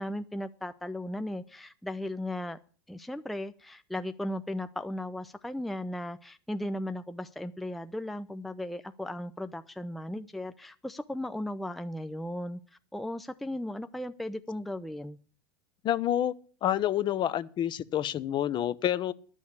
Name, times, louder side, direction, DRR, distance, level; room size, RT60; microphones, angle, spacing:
voice 1, 0.0-2.6 2.9-12.6 12.9-15.2, left 1 dB, ahead, 0.5 m, -36 dB
voice 2, 15.8-16.3 16.6-19.1, left 11 dB, 35° left, 0.7 m, -28 dB
11.5 x 6.4 x 8.6 m
hypercardioid pair, 110°, 13 cm